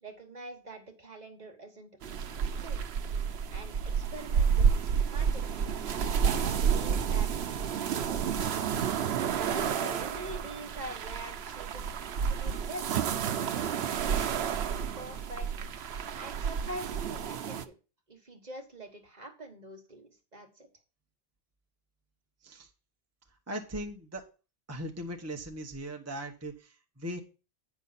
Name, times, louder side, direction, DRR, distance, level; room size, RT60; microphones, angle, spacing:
voice 1, 0.0-2.8 3.5-5.5 6.2-8.6 9.3-13.1 13.4-15.5 16.1-17.7 18.1-20.7, right 1 dB, 40° right, 4 dB, 1.4 m, -45 dB
sound 1, 2.0-17.7, right 7 dB, 80° right, 0.9 m, -30 dB
voice 2, 23.5-24.3 24.7-27.2, equal, 15° right, 3 dB, 1.0 m, -39 dB
9.1 x 6.0 x 4.0 m, 0.33 s
omnidirectional pair, 1.1 m